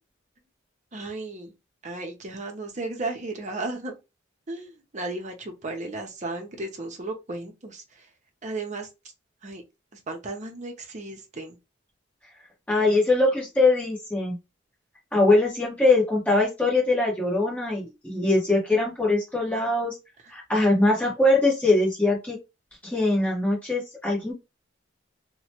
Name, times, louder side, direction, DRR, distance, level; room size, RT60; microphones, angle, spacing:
voice 1, 0.9-1.5 1.8-4.0 4.5-8.1 8.4-8.9 9.4-9.6 9.9-11.6 20.2-20.3, right 2 dB, 40° right, 0.7 m, -34 dB
voice 2, 12.7-14.4 15.1-19.9 20.3-22.4 22.8-24.3, left 2 dB, 10° left, 1.2 m, -22 dB
3.0 x 2.2 x 2.9 m
head